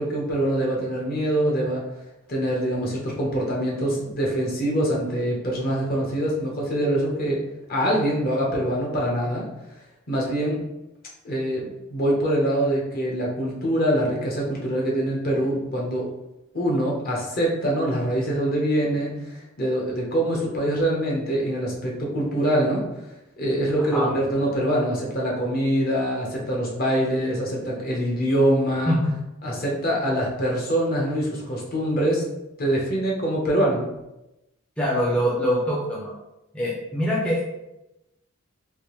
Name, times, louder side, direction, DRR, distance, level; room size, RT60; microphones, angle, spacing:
voice 1, 0.0-1.8 2.3-7.4 7.7-9.4 10.1-10.6 11.2-16.1 16.5-22.9 23.4-29.0 29.4-32.2 32.6-33.9, right 1 dB, 45° left, -2 dB, 0.9 m, -24 dB
voice 2, 34.8-36.1 36.5-37.5, equal, 5° left, -6 dB, 0.5 m, -23 dB
3.4 x 2.6 x 3.1 m, 0.92 s
head